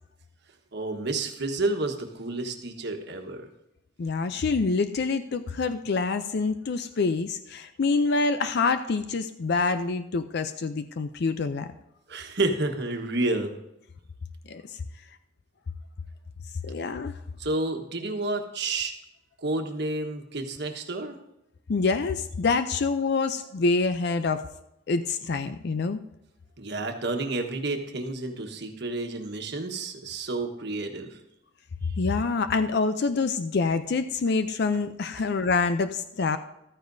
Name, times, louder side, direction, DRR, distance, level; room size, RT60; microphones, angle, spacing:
voice 1, 0.7-3.5 12.1-13.5 17.4-18.9 19.4-21.2 26.6-31.2, right 2 dB, 60° right, 4 dB, 1.3 m, -30 dB
voice 2, 4.0-11.7 14.5-14.8 16.6-17.2 21.7-24.5 24.9-26.0 32.0-36.4, left 4 dB, 55° left, 10 dB, 0.5 m, -26 dB
14.5 x 13.5 x 2.7 m, 0.85 s
head